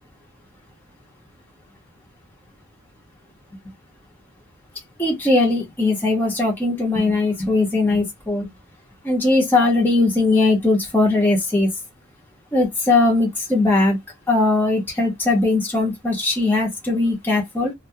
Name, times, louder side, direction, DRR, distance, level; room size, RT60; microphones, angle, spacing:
voice 1, 5.0-8.5 9.0-11.7 12.5-14.0 14.3-17.7, left 2 dB, 10° left, 0.9 m, -19 dB
2.3 x 2.2 x 2.7 m
head